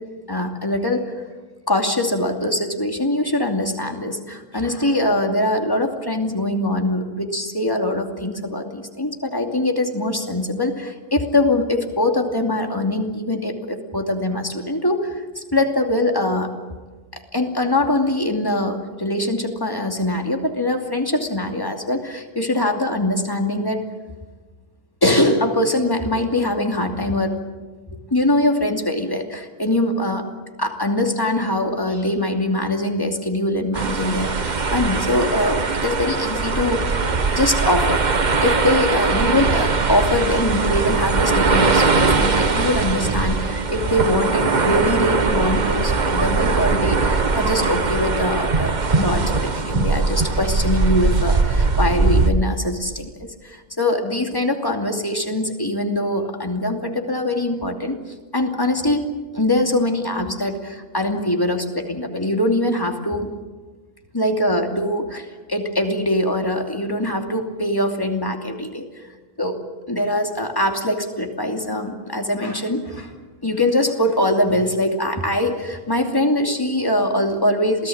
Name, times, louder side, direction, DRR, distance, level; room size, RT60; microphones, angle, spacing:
voice 1, 0.3-1.1 1.7-16.5 17.1-23.8 25.0-27.4 27.9-30.3 30.6-38.1 38.4-58.0 58.3-63.3 64.1-68.9 69.4-69.6 69.9-73.1 73.4-77.9, left 1 dB, 15° left, 4 dB, 2.6 m, -22 dB
sound 1, 33.7-52.3, right 4 dB, 35° right, 1.2 m, -20 dB
27.5 x 18.0 x 8.8 m, 1.3 s
omnidirectional pair, 1.5 m